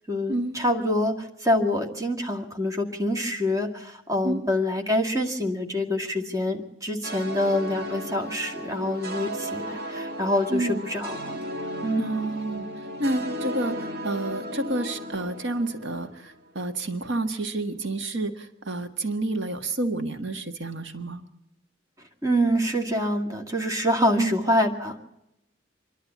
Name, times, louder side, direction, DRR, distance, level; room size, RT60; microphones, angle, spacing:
voice 1, 0.1-11.4 11.8-12.4 22.2-25.0, left 1 dB, 15° right, 1 dB, 2.1 m, -26 dB
sound 1, 7.0-16.3, equal, 55° right, 2.3 m, -35 dB
voice 2, 12.0-12.7 13.0-13.7 14.0-21.2 24.2-24.4, right 2 dB, 75° right, 7 dB, 1.6 m, -29 dB
26.5 x 11.5 x 8.4 m, 0.86 s
head